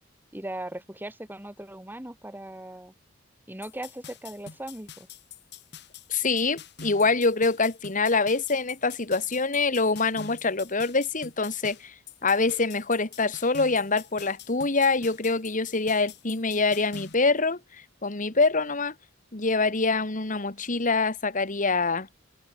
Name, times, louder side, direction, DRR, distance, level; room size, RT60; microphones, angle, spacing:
voice 1, 0.3-2.9 3.5-5.1, right 1 dB, 10° right, 2.0 m, -38 dB
sound 1, 3.6-17.1, left 6 dB, 60° left, 6.2 m, -46 dB
voice 2, 6.1-11.9 12.2-17.6 18.0-18.9 19.3-22.1, left 3 dB, 45° left, 2.0 m, -25 dB
head